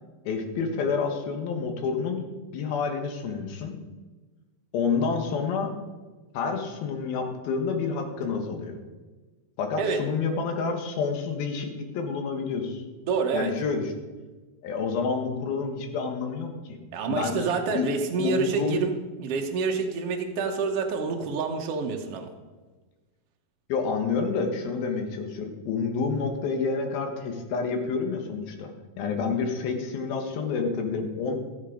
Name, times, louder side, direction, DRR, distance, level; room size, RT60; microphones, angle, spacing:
voice 1, 0.3-2.2 2.5-3.7 4.7-5.7 6.3-8.7 9.6-12.8 13.3-13.8 14.6-16.8 17.1-17.9 18.2-18.8 23.7-28.7 29.0-31.6, left 5 dB, 75° left, 4 dB, 3.2 m, -29 dB
voice 2, 13.0-13.5 16.9-18.9 19.2-22.3, right 5 dB, 85° right, 3 dB, 1.3 m, -27 dB
15.0 x 7.5 x 5.1 m, 1.3 s
omnidirectional pair, 4.3 m